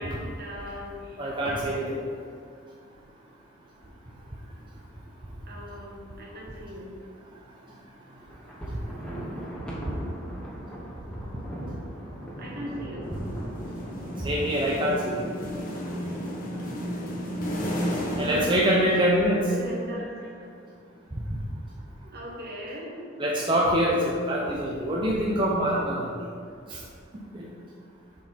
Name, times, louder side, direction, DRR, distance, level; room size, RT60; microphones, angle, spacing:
voice 1, 0.0-1.2 5.5-6.9 8.0-8.1 12.4-13.1 15.7-16.7 18.9-19.1 19.5-20.6 22.0-23.2, equal, 55° right, -3 dB, 1.4 m, -40 dB
voice 2, 1.2-2.0 8.7-8.8 14.2-15.3 18.1-19.5 21.1-21.4 23.2-26.3 26.7-26.8 27.3-27.5, equal, 25° right, -4 dB, 0.6 m, -25 dB
Thunder, 8.3-15.5, right 1 dB, 5° left, 1.0 m, -39 dB
sound 1, 13.0-19.5, equal, 45° left, 1.1 m, -33 dB
7.3 x 4.0 x 4.4 m, 2.3 s
head